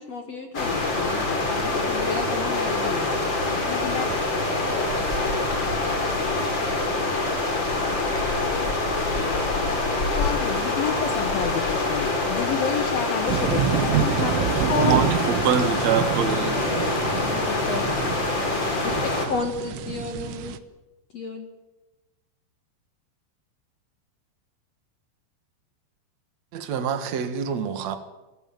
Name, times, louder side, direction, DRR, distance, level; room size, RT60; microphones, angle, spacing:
voice 1, 0.0-3.3 13.5-13.6 14.0-14.3 14.7-15.1 16.4-17.8 18.8-19.0 19.3-20.6 21.1-21.5, left 4 dB, 60° left, 5 dB, 1.8 m, -32 dB
sound 1, 0.5-19.3, left 2 dB, 25° left, 3.6 m, -25 dB
voice 2, 3.5-4.1 10.1-14.5, left 9 dB, 80° left, 10 dB, 2.1 m, -30 dB
sound 2, 13.3-20.6, right 11 dB, 90° right, 3.6 m, -28 dB
voice 3, 14.8-16.6 26.5-28.0, right 7 dB, 55° right, 8 dB, 2.0 m, -25 dB
25.5 x 15.5 x 9.0 m, 1.1 s
omnidirectional pair, 5.5 m